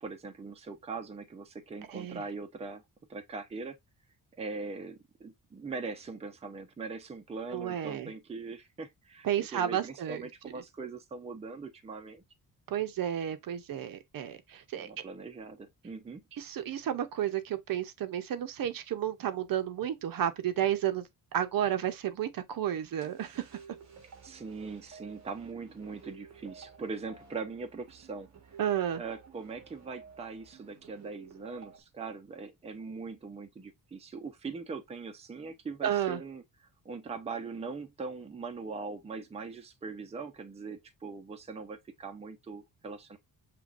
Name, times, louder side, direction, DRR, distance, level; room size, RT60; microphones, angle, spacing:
voice 1, 0.0-2.8 3.1-3.8 4.4-12.2 14.8-16.2 24.2-28.3 28.9-36.4 36.8-43.2, right 4 dB, 15° right, 0.5 m, -41 dB
voice 2, 1.9-2.2 7.5-8.1 9.2-10.2 12.7-14.9 16.3-23.6 28.6-29.0 35.8-36.2, right 10 dB, 60° right, 0.7 m, -32 dB
sound 1, 23.0-31.8, right 6 dB, 45° right, 1.4 m, -53 dB
6.8 x 3.0 x 2.4 m
wide cardioid pair, 160°, 39 cm